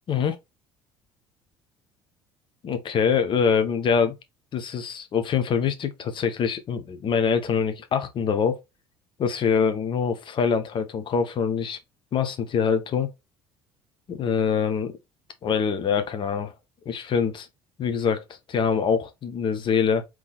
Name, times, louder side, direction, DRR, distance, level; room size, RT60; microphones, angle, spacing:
voice 1, 2.6-4.1 4.5-8.6 9.2-11.8 12.1-13.1 14.1-14.9 15.4-16.5 16.9-17.5 17.8-18.2 18.5-20.0, left 6 dB, 40° left, 0.9 m, -24 dB
3.7 x 3.1 x 3.9 m
figure-of-eight pair, 60°, 13 cm